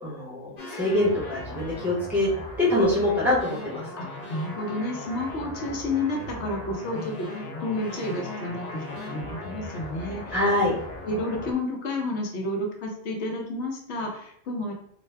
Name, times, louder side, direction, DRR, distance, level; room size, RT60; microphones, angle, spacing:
voice 1, 0.0-2.3 2.6-3.9 10.3-10.7, left 1 dB, ahead, -6 dB, 0.8 m, -24 dB
sound 1, 0.6-11.5, left 1 dB, 50° left, 0.5 m, -38 dB
voice 2, 4.0-10.4 11.0-14.7, left 2 dB, 65° left, 1 dB, 1.0 m, -31 dB
2.6 x 2.2 x 3.2 m, 0.67 s
omnidirectional pair, 1.3 m